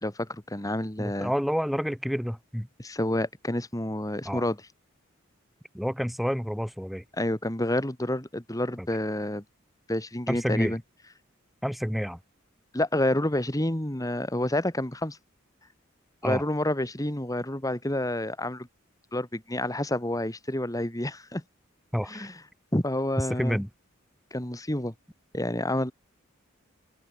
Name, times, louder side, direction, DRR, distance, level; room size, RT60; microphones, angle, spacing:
voice 1, 0.0-1.3 2.8-4.6 7.1-9.4 9.9-10.8 12.7-15.2 16.2-18.7 19.1-21.4 22.1-22.4 22.7-23.6 24.3-24.9 25.3-25.9, left 1 dB, 15° left, 2.0 m, -29 dB
voice 2, 1.0-2.7 4.2-4.4 5.7-7.0 8.8-8.9 10.3-10.7 11.6-12.2 16.2-16.4 21.9-22.3 23.4-23.7, equal, ahead, 2.3 m, -29 dB
open air
head